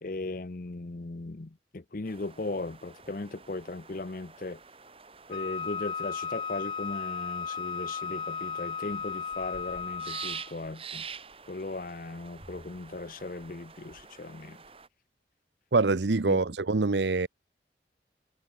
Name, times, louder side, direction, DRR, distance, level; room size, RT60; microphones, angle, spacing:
voice 1, 0.0-4.6 5.3-11.1 11.5-14.6 16.3-16.4, left 2 dB, 50° left, 0.7 m, -37 dB
sound 1, 2.1-14.9, right 6 dB, 30° right, 4.0 m, -47 dB
Wind instrument woodwind instrument, 5.3-10.5, left 6 dB, 25° left, 1.0 m, -35 dB
voice 2, 15.7-17.3, right 3 dB, 80° right, 0.8 m, -25 dB
head